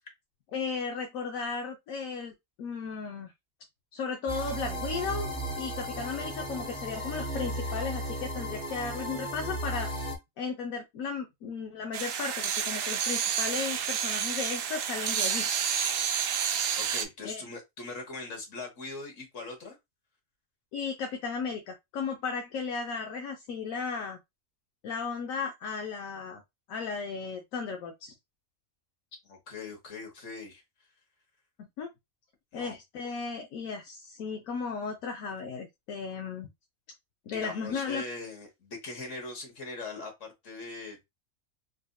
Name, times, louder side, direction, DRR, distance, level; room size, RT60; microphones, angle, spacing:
voice 1, 0.5-2.3 2.6-3.3 3.9-9.9 10.4-15.5 17.2-17.4 20.7-24.2 24.8-26.4 26.7-28.1 31.6-31.9 32.5-36.5 37.3-38.0, left 5 dB, 80° left, 1.1 m, -35 dB
sound 1, 4.3-10.2, right 1 dB, 5° left, 0.7 m, -35 dB
sound 2, 11.9-17.0, right 8 dB, 75° right, 0.9 m, -30 dB
voice 2, 16.8-19.8 29.2-30.6 32.5-32.8 37.2-41.0, left 3 dB, 65° left, 1.6 m, -41 dB
4.1 x 2.6 x 2.2 m
omnidirectional pair, 1.4 m